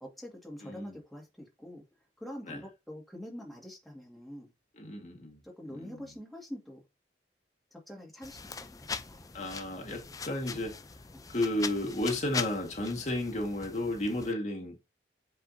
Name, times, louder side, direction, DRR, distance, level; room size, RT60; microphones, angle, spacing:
voice 1, 0.0-1.8 2.2-4.5 5.4-6.8 7.7-9.3 11.1-11.2, equal, ahead, 1.9 m, -45 dB
voice 2, 0.6-1.0 2.4-2.6 4.7-5.4 5.7-6.0 9.3-10.8 11.3-14.8, left 1 dB, 40° left, 1.7 m, -33 dB
sound 1, 8.2-14.3, left 5 dB, 20° left, 0.4 m, -41 dB
8.2 x 4.9 x 2.7 m
head